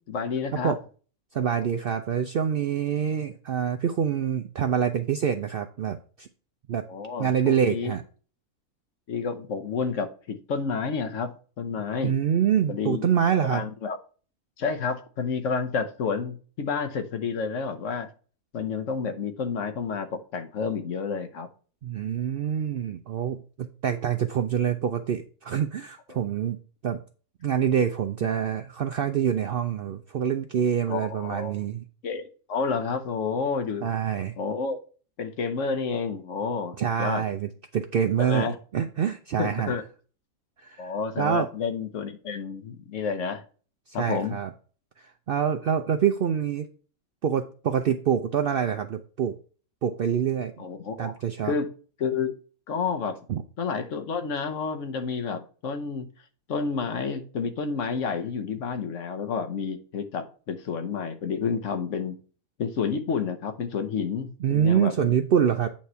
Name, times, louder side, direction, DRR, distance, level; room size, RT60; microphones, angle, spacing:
voice 1, 0.1-0.7 6.9-7.9 9.1-12.2 12.7-13.1 13.5-14.0 14.6-18.1 18.5-21.5 30.9-31.6 32.0-33.9 34.4-34.8 35.2-37.2 38.2-38.6 39.4-39.8 40.8-43.4 43.9-44.3 50.6-51.1 51.4-51.7 52.0-52.3 52.7-53.2 53.6-56.1 56.5-62.1 62.6-65.1, left 5 dB, 60° left, 8 dB, 1.2 m, -30 dB
voice 2, 1.3-6.3 6.7-6.8 7.2-8.0 12.0-13.6 21.8-26.6 26.8-27.0 27.4-31.8 33.8-34.3 36.8-39.7 40.6-40.9 41.2-41.5 44.0-44.5 45.0-46.7 47.2-49.3 49.8-50.5 51.0-51.5 53.3-53.4 64.4-65.7, right 8 dB, 75° right, 7 dB, 0.5 m, -26 dB
8.7 x 3.2 x 5.5 m, 0.39 s
omnidirectional pair, 1.5 m